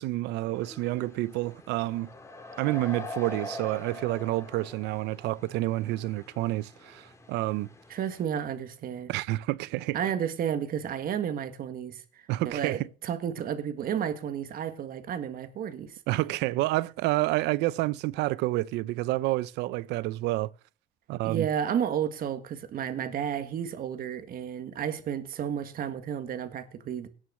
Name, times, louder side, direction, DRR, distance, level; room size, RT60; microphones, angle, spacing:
voice 1, 0.0-2.1 2.6-7.7 9.1-10.0 12.3-12.9 16.1-20.5 21.1-21.5, right 18 dB, 90° right, 0.6 m, -29 dB
sound 1, 0.5-8.2, left 1 dB, 15° left, 2.9 m, -44 dB
voice 2, 7.9-9.1 9.9-16.0 21.2-27.1, right 9 dB, 60° right, 1.6 m, -32 dB
17.5 x 6.3 x 6.2 m
cardioid pair, 110°, 17 cm